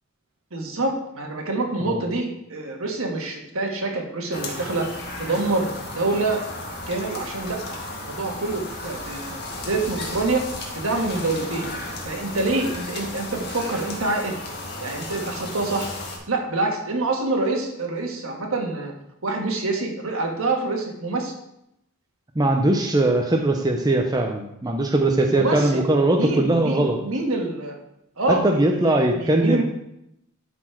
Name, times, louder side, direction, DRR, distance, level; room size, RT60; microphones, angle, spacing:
voice 1, 0.5-6.4 6.9-11.7 12.0-14.4 14.8-15.9 16.3-18.9 19.2-21.3 25.3-25.8 26.1-27.8 28.2-29.6, right 2 dB, 65° right, 2 dB, 1.5 m, -26 dB
sound 1, 4.3-16.2, left 2 dB, 45° left, 1.7 m, -34 dB
voice 2, 22.4-27.0 28.3-29.6, right 2 dB, 15° right, 2 dB, 0.6 m, -20 dB
11.5 x 4.3 x 4.5 m, 0.81 s
head